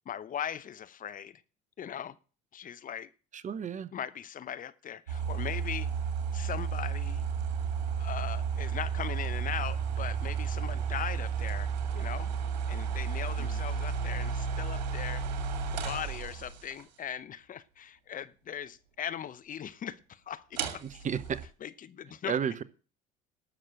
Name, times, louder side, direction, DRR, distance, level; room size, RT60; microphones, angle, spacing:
voice 1, 0.1-1.4 1.8-2.2 2.5-3.1 3.9-5.9 6.3-7.3 7.8-12.3 12.7-15.2 15.7-20.8 21.6-22.4, left 9 dB, 40° left, 0.8 m, -39 dB
voice 2, 3.3-3.9 13.4-13.6 20.8-21.4 22.3-22.6, right 7 dB, 35° right, 0.9 m, -33 dB
sound 1, 5.1-16.8 20.5-21.4, right 6 dB, 90° right, 1.8 m, -32 dB
12.0 x 6.5 x 7.6 m
hypercardioid pair, 75°, 21 cm